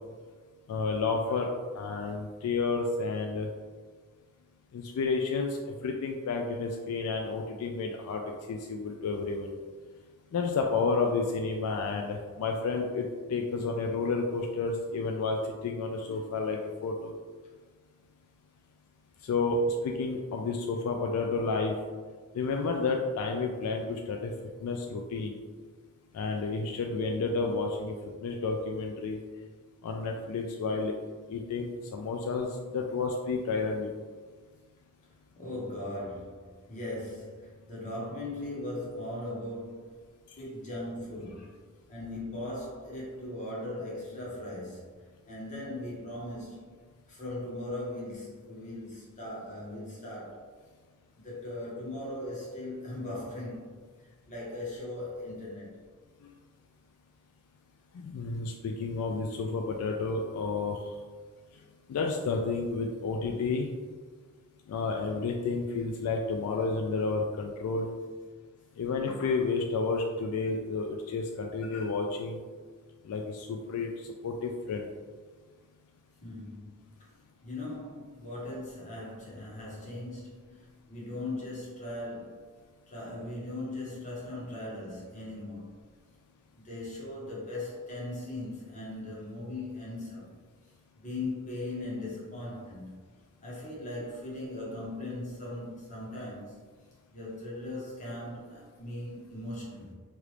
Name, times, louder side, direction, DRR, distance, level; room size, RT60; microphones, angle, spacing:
voice 1, 0.7-3.5 4.7-8.2 8.5-9.5 10.3-17.1 19.2-21.8 22.3-24.3 24.6-25.4 26.1-29.2 29.8-30.9 31.3-33.9 57.9-60.9 61.9-63.7 64.7-67.9 68.8-72.4 73.0-74.9, left 4 dB, 80° left, 2 dB, 0.3 m, -31 dB
voice 2, 35.4-40.0 40.4-50.5 51.1-53.7 54.3-55.8 76.2-77.1 77.4-82.6 82.9-85.7 86.5-90.4 91.0-93.0 93.4-96.6 97.1-99.9, left 1 dB, 35° left, -6 dB, 1.0 m, -39 dB
3.0 x 2.4 x 3.2 m, 1.5 s
head